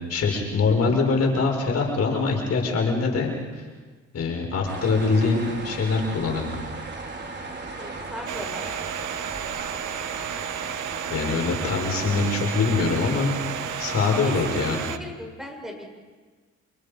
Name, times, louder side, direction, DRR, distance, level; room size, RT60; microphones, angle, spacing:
voice 1, 0.1-3.6 4.1-6.5 11.1-13.3 13.8-14.8, left 4 dB, 55° left, 0 dB, 6.1 m, -23 dB
sound 1, 4.7-14.7, right 3 dB, 35° right, 4.3 m, -36 dB
voice 2, 7.8-8.7 14.2-15.9, left 1 dB, ahead, 1 dB, 7.0 m, -38 dB
Domestic sounds home sounds, 8.3-15.0, right 10 dB, 75° right, 0.9 m, -33 dB
29.5 x 28.0 x 5.5 m, 1.4 s
cardioid pair, 90°, 30 cm